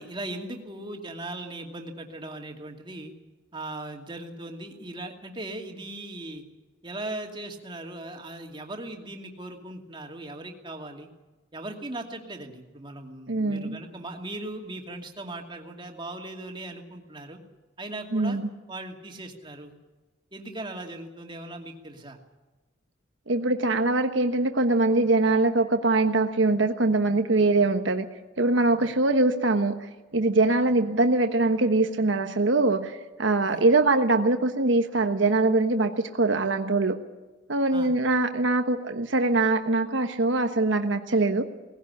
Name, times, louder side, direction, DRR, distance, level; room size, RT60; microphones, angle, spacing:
voice 1, 0.0-3.1 3.5-6.4 6.8-11.1 11.5-17.4 17.8-18.4 18.7-19.7 20.3-22.2 28.8-28.9 33.4-33.6 37.7-37.9, right 2 dB, 25° right, 2 dB, 2.5 m, -38 dB
voice 2, 13.3-13.8 18.1-18.4 23.3-28.1 28.4-29.8 30.1-37.0 37.5-41.5, right 2 dB, 75° right, 7 dB, 1.2 m, -23 dB
19.0 x 16.5 x 9.8 m, 1.2 s
head